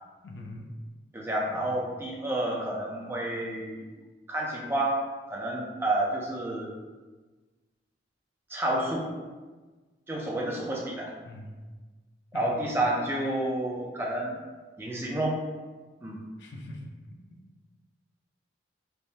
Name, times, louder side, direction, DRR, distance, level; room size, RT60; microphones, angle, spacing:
voice 1, 0.2-0.7 1.5-1.7 11.2-11.5 12.3-12.6 16.4-16.8 17.3-17.4, left 1 dB, 70° left, 1 dB, 0.4 m, -42 dB
voice 2, 1.1-3.8 4.3-6.7 8.5-9.1 10.1-11.1 12.3-14.3 14.8-15.4 16.0-16.2, right 1 dB, 10° right, -2 dB, 0.4 m, -30 dB
3.3 x 2.0 x 2.7 m, 1.3 s
head